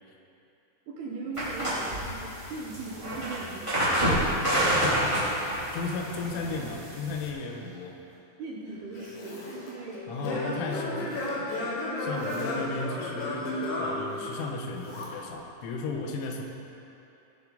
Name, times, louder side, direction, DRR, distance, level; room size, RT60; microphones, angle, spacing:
voice 1, 0.9-4.3 8.4-10.6 10.9-11.4, right 3 dB, 70° right, -3 dB, 2.6 m, -40 dB
sound 1, 1.3-7.3, equal, 10° right, 1.4 m, -28 dB
voice 2, 4.7-8.0 10.1-11.3 12.0-13.5 13.8-16.4, left 3 dB, 90° left, 2 dB, 3.5 m, -35 dB
Zipper (clothing), 7.2-8.2 8.6-9.7 11.0-11.4 12.0-12.7 14.0-14.3 14.7-15.1, left 2 dB, 55° left, 2.4 m, -47 dB
Singing / Plucked string instrument, 9.0-14.8, left 1 dB, 75° left, 3.7 m, -33 dB
16.0 x 8.1 x 3.9 m, 2.8 s
omnidirectional pair, 5.5 m